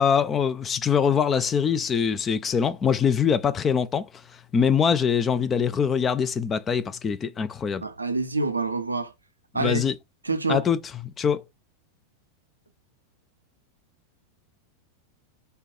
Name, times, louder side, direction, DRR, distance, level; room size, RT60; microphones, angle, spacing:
voice 1, 0.0-4.1 4.5-7.9 9.5-9.9 10.5-10.8 11.0-11.4, left 7 dB, 20° left, 0.4 m, -23 dB
voice 2, 7.8-9.1 9.5-9.8 10.2-10.6, right 3 dB, 80° right, 0.5 m, -26 dB
3.3 x 2.3 x 4.2 m
figure-of-eight pair, 90°, 0 cm